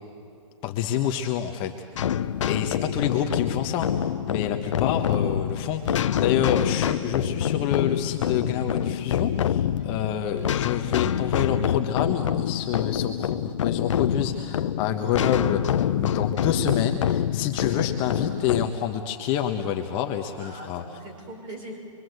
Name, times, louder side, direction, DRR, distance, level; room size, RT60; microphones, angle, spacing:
voice 1, 0.6-1.7 2.5-20.8, left 9 dB, 30° left, 4 dB, 1.3 m, -28 dB
sound 1, 2.0-18.7, left 9 dB, 70° left, 0.9 m, -26 dB
voice 2, 20.4-21.8, right 1 dB, 30° right, 3 dB, 5.9 m, -42 dB
26.5 x 23.5 x 8.1 m, 2.5 s
hypercardioid pair, 145°, 17 cm